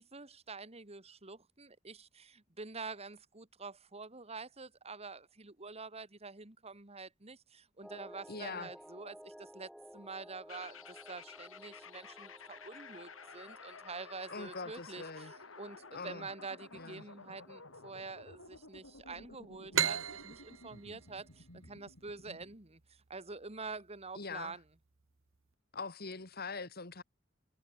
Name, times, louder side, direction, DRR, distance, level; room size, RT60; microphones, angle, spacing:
voice 1, 0.0-24.6, right 4 dB, 30° right, 2.1 m, -47 dB
sound 1, 7.8-20.7 21.2-21.3, equal, ahead, 5.2 m, -57 dB
voice 2, 8.3-8.7 14.3-15.3 15.9-16.3 16.7-17.0 24.2-24.6 25.7-27.0, left 4 dB, 50° left, 2.5 m, -43 dB
sound 2, 10.5-22.6, left 4 dB, 85° left, 6.5 m, -53 dB
sound 3, 19.7-23.2, right 9 dB, 80° right, 1.0 m, -36 dB
head